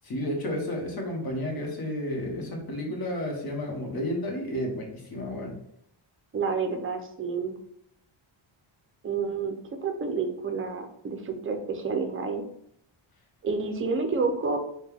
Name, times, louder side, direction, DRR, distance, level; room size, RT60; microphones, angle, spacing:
voice 1, 0.0-5.5, left 1 dB, 45° left, 0 dB, 1.2 m, -32 dB
voice 2, 6.3-7.6 9.0-9.6 9.8-12.4 13.4-14.6, right 4 dB, 25° right, 6 dB, 0.5 m, -29 dB
4.2 x 2.3 x 3.4 m, 0.71 s
wide cardioid pair, 145°, 49 cm